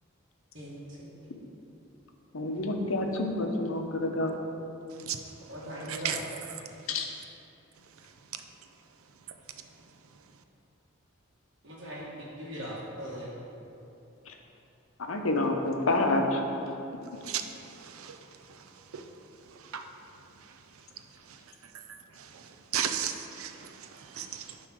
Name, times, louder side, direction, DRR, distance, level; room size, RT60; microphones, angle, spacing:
voice 1, 0.5-1.3 5.5-6.2 11.6-13.3, equal, 60° right, 1.5 m, -40 dB
voice 2, 2.3-4.3 6.9-7.1 14.3-14.4 15.1-16.4, left 2 dB, 75° left, 0.8 m, -28 dB
voice 3, 5.9-6.2 17.2-18.2 18.5-18.6 18.9-19.0 19.5-19.8 20.4-20.5 21.3-21.4 21.7-21.8 22.1-24.7, right 9 dB, 85° right, 0.5 m, -36 dB
9.4 x 3.2 x 6.1 m
head